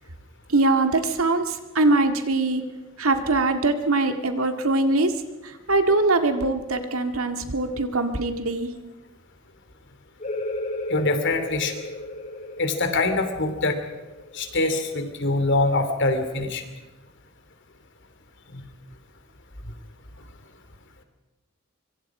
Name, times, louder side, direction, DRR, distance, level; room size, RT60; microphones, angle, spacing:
voice 1, 0.5-2.6 3.0-5.1 5.4-8.7, right 2 dB, 85° right, 6 dB, 2.1 m, -22 dB
sound 1, 10.2-15.6, left 1 dB, 35° left, 3.4 m, -34 dB
voice 2, 10.9-11.8 12.6-13.8 14.3-16.6 18.5-18.6, left 2 dB, 60° left, 7 dB, 2.9 m, -24 dB
24.5 x 24.0 x 4.9 m, 1.1 s
head